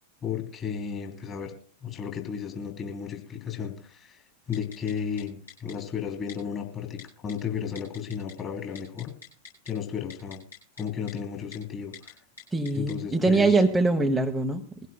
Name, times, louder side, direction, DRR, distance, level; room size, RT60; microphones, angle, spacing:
voice 1, 0.2-1.5 1.8-9.1 9.6-10.4 10.8-12.2 12.7-13.5, left 7 dB, 25° left, 3 dB, 3.5 m, -34 dB
Typing, 4.5-4.9 5.2-5.3 5.5-5.7 6.3-6.4 7.0-7.3 7.8-8.3 8.6-9.7 10.1-10.8 11.1-11.2 11.5-11.6 11.9-12.1 12.4-12.9 13.3-13.4, left 6 dB, 70° left, 8.0 m, -45 dB
voice 2, 12.5-14.9, right 3 dB, 5° right, 4 dB, 1.0 m, -23 dB
22.5 x 16.0 x 2.2 m, 0.38 s
figure-of-eight pair, 90°, 0 cm